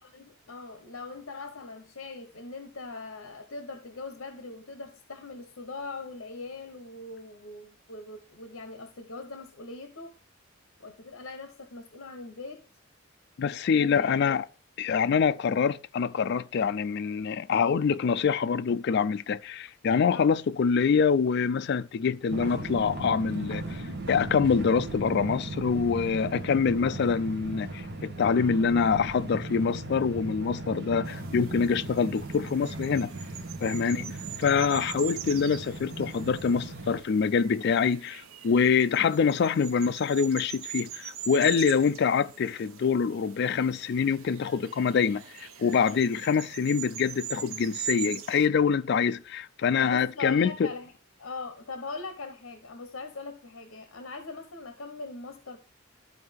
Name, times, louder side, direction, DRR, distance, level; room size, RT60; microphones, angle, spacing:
voice 1, 0.1-10.1 10.8-12.7 13.7-14.4 20.1-20.3 33.8-34.1 34.7-34.9 49.8-50.9 51.2-55.6, left 3 dB, 70° left, 0.9 m, -41 dB
voice 2, 13.4-14.4 14.8-23.8 24.1-33.1 33.6-34.1 34.4-50.7, left 6 dB, 50° left, 0.3 m, -25 dB
sound 1, 22.3-37.0, right 2 dB, 55° right, 1.3 m, -37 dB
sound 2, 31.0-48.5, right 9 dB, 85° right, 0.7 m, -42 dB
12.5 x 4.3 x 3.5 m
head